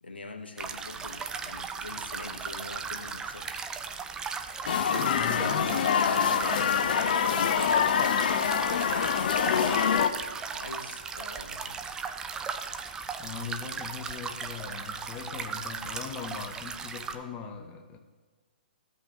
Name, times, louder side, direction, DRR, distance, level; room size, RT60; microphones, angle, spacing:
voice 1, 0.0-3.6 4.7-8.2 8.8-9.8 10.5-11.7, left 3 dB, 85° left, 4 dB, 1.1 m, -43 dB
sound 1, 0.6-17.2, right 5 dB, 15° right, 0.5 m, -37 dB
sound 2, 4.7-10.1, left 7 dB, 55° left, 0.6 m, -25 dB
voice 2, 4.9-5.8 13.2-18.0, left 6 dB, 25° left, 4 dB, 0.8 m, -39 dB
14.5 x 5.6 x 2.9 m, 1.4 s
hypercardioid pair, 130°, 5 cm